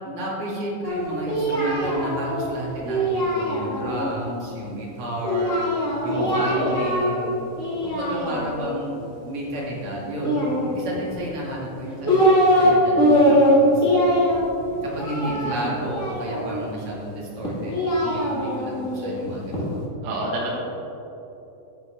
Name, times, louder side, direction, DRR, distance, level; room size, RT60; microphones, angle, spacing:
voice 1, 0.0-7.4 7.8-10.3 10.7-14.2 14.8-19.8, right 1 dB, 45° right, -4 dB, 2.7 m, -32 dB
Singing, 0.8-4.1 5.2-7.3 7.6-8.8 10.2-11.1 11.7-12.7 13.0-16.6 17.4-19.7, equal, 35° left, 1.3 m, -22 dB
voice 2, 6.1-6.9 15.3-15.8 20.0-20.6, right 1 dB, 80° right, -4 dB, 3.4 m, -30 dB
11.5 x 9.7 x 3.4 m, 3.0 s
omnidirectional pair, 4.1 m